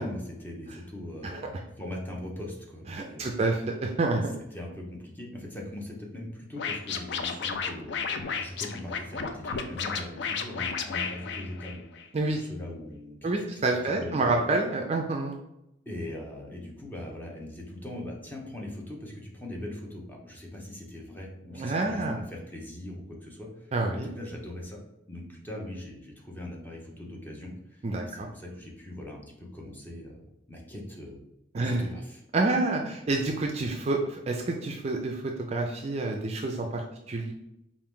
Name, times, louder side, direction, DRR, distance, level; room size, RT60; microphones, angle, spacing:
voice 1, 0.0-3.4 4.5-8.1 8.4-11.8 12.4-13.6 14.0-14.5 15.8-24.8 25.1-31.2 31.6-32.2, left 1 dB, 10° left, -2 dB, 0.8 m, -41 dB
voice 2, 2.9-4.3 12.1-12.4 13.2-15.4 21.5-22.2 23.7-24.1 27.8-28.3 31.5-31.8 32.3-37.3, right 2 dB, 35° right, 2 dB, 0.4 m, -28 dB
Scratching (performance technique), 6.6-12.0, left 6 dB, 65° left, 0.4 m, -33 dB
4.6 x 2.5 x 3.6 m, 0.83 s
head